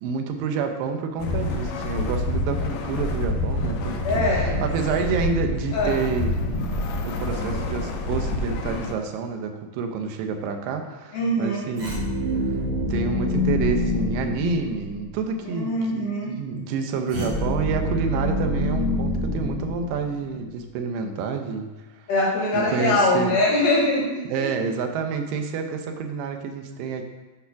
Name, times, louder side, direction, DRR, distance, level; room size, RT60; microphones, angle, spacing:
voice 1, 0.0-6.5 7.0-12.0 12.9-21.7 22.7-23.4 24.3-27.0, right 5 dB, 90° right, 5 dB, 2.4 m, -28 dB
sound 1, 1.2-8.9, left 2 dB, 75° left, 1.7 m, -27 dB
voice 2, 4.0-4.6 5.7-5.9 11.1-11.7 15.5-16.3 22.1-24.1 24.3-24.5, left 2 dB, 60° left, -3 dB, 1.8 m, -22 dB
sound 2, 11.8-15.1 17.1-20.4, left 1 dB, 70° right, 2.9 m, -26 dB
8.4 x 3.4 x 5.7 m, 1.2 s
omnidirectional pair, 3.8 m